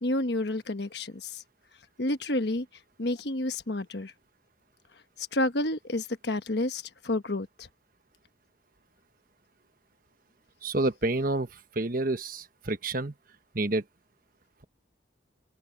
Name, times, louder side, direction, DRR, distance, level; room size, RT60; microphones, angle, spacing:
voice 1, 0.0-1.4 2.0-2.7 3.0-4.1 5.2-7.7, left 1 dB, 60° left, 1.3 m, -30 dB
voice 2, 10.6-13.1 13.5-13.8, right 2 dB, 50° right, 1.3 m, -29 dB
head